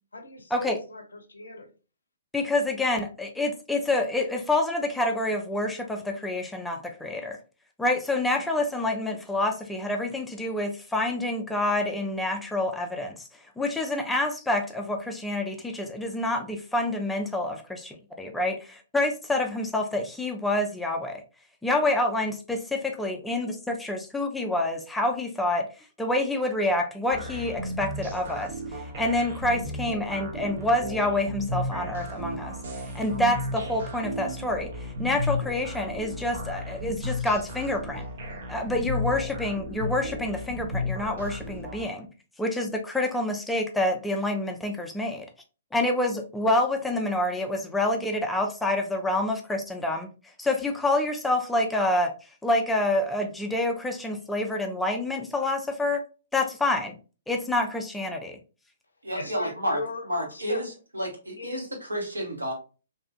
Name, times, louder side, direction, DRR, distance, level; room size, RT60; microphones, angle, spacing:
voice 1, 0.1-1.7 59.1-60.6 61.4-61.7, left 2 dB, 70° left, 6 dB, 0.5 m, -38 dB
voice 2, 2.3-7.4 7.8-13.2 13.6-21.2 21.6-25.7 26.0-34.7 35.0-38.0 38.5-42.1 42.4-45.3 45.7-50.1 50.4-52.1 52.4-56.0 56.3-56.9 57.3-58.4, left 1 dB, 5° left, 3 dB, 0.4 m, -27 dB
sound 1, 27.1-41.9, left 1 dB, 50° right, 0.6 m, -34 dB
voice 3, 59.0-59.8 60.1-60.7 60.9-62.5, equal, 80° right, 0 dB, 1.0 m, -30 dB
2.7 x 2.4 x 2.3 m, 0.34 s
figure-of-eight pair, 120°, 0 cm